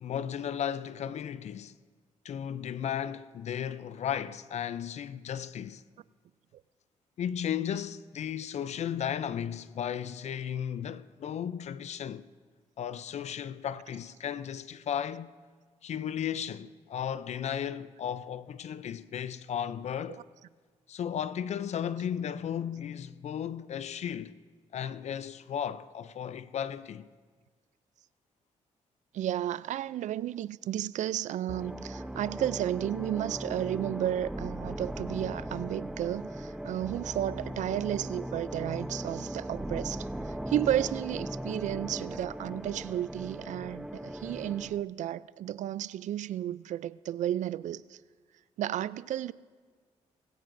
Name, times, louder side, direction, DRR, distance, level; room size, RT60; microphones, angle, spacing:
voice 1, 0.0-1.7 2.2-5.8 7.2-12.3 12.8-15.3 15.8-20.2 20.9-24.3 24.7-27.1, left 9 dB, 60° left, 0.4 m, -35 dB
voice 2, 29.1-48.0 48.6-49.3, right 12 dB, 70° right, 0.4 m, -33 dB
sound 1, 31.5-44.8, right 1 dB, 5° right, 0.4 m, -38 dB
20.0 x 17.0 x 2.6 m
cardioid pair, 75°, 13 cm